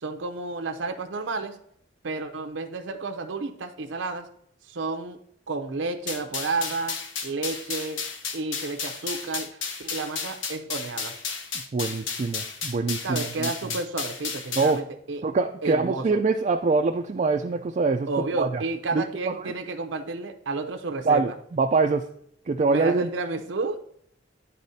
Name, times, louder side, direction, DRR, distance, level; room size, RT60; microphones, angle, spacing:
voice 1, 0.0-1.6 2.0-4.3 4.7-5.2 5.5-8.0 8.3-11.2 13.0-15.2 15.6-16.2 18.1-21.3 22.7-23.8, right 3 dB, 85° right, 6 dB, 0.7 m, -31 dB
sound 1, 6.1-14.8, left 5 dB, 85° left, 0.9 m, -33 dB
voice 2, 11.7-13.5 14.6-14.8 15.2-18.1 18.4-18.6 18.9-19.5 21.1-22.0 22.5-23.1, right 4 dB, 40° right, 3 dB, 0.4 m, -24 dB
11.0 x 4.1 x 2.7 m, 0.70 s
head